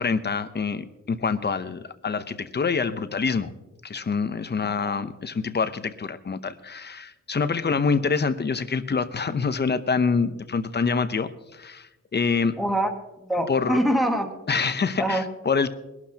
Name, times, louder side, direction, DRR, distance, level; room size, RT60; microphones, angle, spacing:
voice 1, 0.0-3.5 3.8-12.6 13.5-13.8 14.5-15.7, left 5 dB, 35° left, 11 dB, 0.8 m, -26 dB
voice 2, 4.6-5.0 12.6-12.9 13.2-14.3 15.0-15.2, right 1 dB, ahead, 2 dB, 1.6 m, -24 dB
21.5 x 12.0 x 2.9 m, 1.0 s
wide cardioid pair, 120°, 32 cm